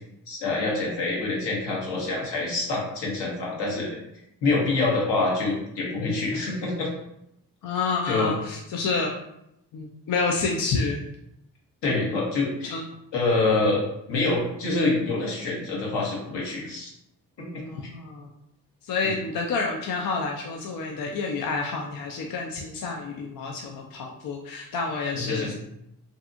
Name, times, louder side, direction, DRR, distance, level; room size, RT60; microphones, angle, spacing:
voice 1, 0.3-4.0 4.4-6.9 8.1-8.3 11.8-12.7 13.1-13.8 14.1-16.9 17.4-17.6 19.0-19.1 25.2-25.5, left 3 dB, 70° left, -3 dB, 1.1 m, -26 dB
voice 2, 7.6-9.1 9.7-11.0 12.6-12.8 17.7-18.3 18.8-25.5, left 4 dB, 50° left, 0 dB, 0.5 m, -29 dB
2.6 x 2.5 x 2.5 m, 0.80 s
supercardioid pair, 50°, 43 cm